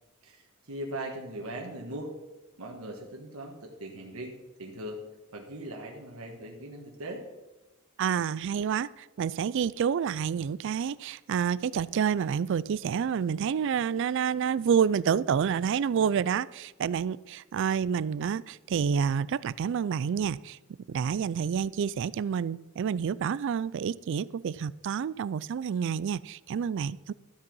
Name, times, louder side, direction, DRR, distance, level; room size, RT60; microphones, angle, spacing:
voice 1, 0.2-2.1 2.6-5.0 5.3-7.2, right 1 dB, 80° right, 1.5 m, -40 dB
voice 2, 8.0-20.6 20.9-27.1, right 7 dB, 60° right, 0.3 m, -28 dB
12.5 x 7.8 x 5.4 m
head